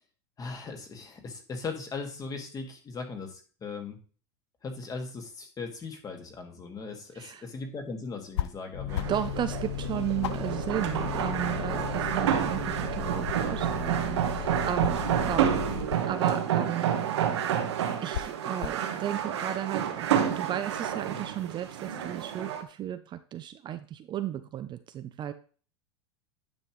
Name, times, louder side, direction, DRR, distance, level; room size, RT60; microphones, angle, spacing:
voice 1, 0.4-4.0 4.6-9.0, left 4 dB, 25° left, 3 dB, 2.1 m, -38 dB
sound 1, 8.3-8.6 8.9-9.3 9.7-9.8 10.2-11.5 11.9-12.7 13.0-14.0 14.8-16.4 17.2-17.4 18.1-18.9, left 11 dB, 80° left, 0.5 m, -36 dB
sound 2, 8.7-15.8, left 8 dB, 50° left, 2.8 m, -36 dB
sound 3, 8.9-22.6, right 9 dB, 80° right, 1.3 m, -29 dB
voice 2, 9.0-15.6 16.0-17.4 18.0-25.3, right 11 dB, 35° right, 10 dB, 0.6 m, -34 dB
9.8 x 5.6 x 3.1 m, 0.39 s
hypercardioid pair, 110°, 14 cm